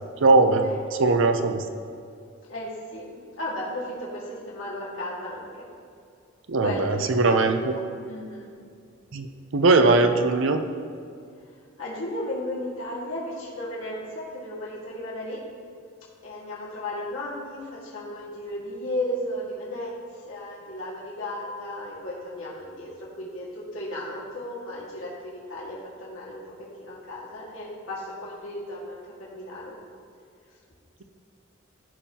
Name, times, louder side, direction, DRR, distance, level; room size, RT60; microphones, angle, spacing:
voice 1, 0.2-1.6 6.5-7.7 9.1-9.3 9.5-10.6, right 3 dB, 65° right, 7 dB, 0.6 m, -20 dB
voice 2, 2.5-3.1 3.4-5.5 6.6-7.8 8.1-8.5 11.8-15.4 16.2-19.9 20.2-22.9 23.2-26.5 26.8-29.0 29.3-29.8, left 1 dB, 85° left, -6 dB, 2.0 m, -34 dB
14.5 x 5.4 x 2.9 m, 2.3 s
head